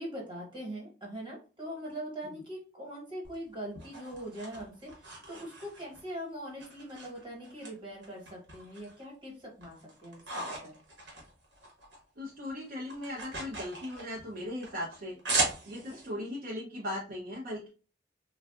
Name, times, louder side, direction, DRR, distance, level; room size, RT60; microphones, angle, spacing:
voice 1, 0.0-10.7 15.9-16.2, equal, 30° right, -1 dB, 1.2 m, -42 dB
sound 1, 3.2-6.1 6.6-7.7 8.0-9.0 9.4-12.0 12.3-16.1, right 2 dB, 80° right, 1.1 m, -37 dB
voice 2, 12.2-15.2 15.7-17.7, left 1 dB, 50° right, -2 dB, 0.5 m, -38 dB
3.4 x 2.3 x 2.2 m, 0.35 s
head